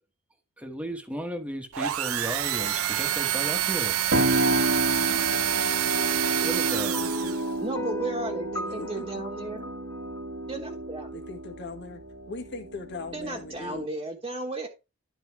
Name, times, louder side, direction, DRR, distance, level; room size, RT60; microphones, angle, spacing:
voice 1, 0.6-4.0 6.4-7.0, equal, 5° right, 1.4 m, -35 dB
sound 1, 1.7-7.5, right 12 dB, 80° right, 0.6 m, -27 dB
sound 2, 4.1-13.8, right 1 dB, 60° right, 1.4 m, -30 dB
voice 2, 5.0-5.6 6.1-6.6 7.0-7.4 8.7-9.2 11.1-12.0 12.3-13.9, left 3 dB, 55° left, 1.7 m, -41 dB
sound 3, 6.9-11.3, left 2 dB, 15° left, 0.4 m, -39 dB
voice 3, 7.6-9.7 10.5-11.1 13.1-14.7, right 2 dB, 25° right, 1.5 m, -34 dB
12.0 x 4.4 x 4.7 m
head